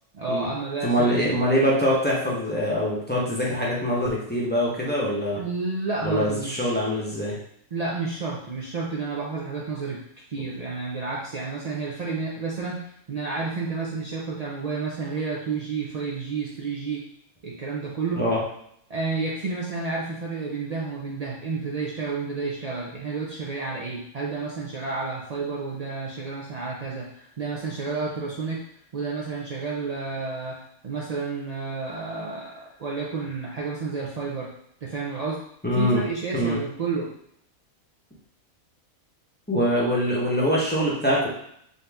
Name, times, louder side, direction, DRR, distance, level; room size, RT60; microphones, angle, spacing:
voice 1, 0.1-1.4 5.4-6.8 7.7-10.0 10.3-17.0 17.4-18.3 18.9-28.6 28.9-34.5 34.8-35.4 35.8-37.1, right 4 dB, 80° right, -4 dB, 0.3 m, -30 dB
voice 2, 0.8-5.4 6.0-7.4 18.1-18.4 35.6-36.0 36.3-36.6 39.5-41.3, equal, 10° left, -6 dB, 0.7 m, -23 dB
3.8 x 2.7 x 3.4 m, 0.70 s
omnidirectional pair, 1.5 m